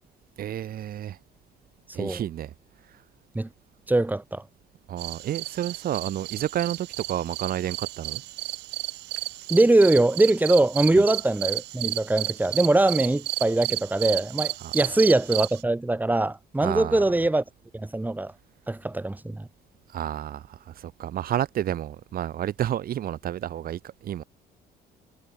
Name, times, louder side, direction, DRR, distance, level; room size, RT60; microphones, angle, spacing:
voice 1, 0.4-1.2 1.9-2.5 4.9-8.2 10.9-11.0 14.6-14.7 16.6-17.0 19.9-24.2, right 11 dB, 60° right, 6.4 m, -30 dB
voice 2, 3.9-4.4 9.5-17.4 17.7-18.3 18.7-19.5, right 2 dB, 10° right, 5.9 m, -22 dB
sound 1, 5.0-15.6, right 18 dB, 85° right, 4.8 m, -33 dB
cardioid pair, 110°, 17 cm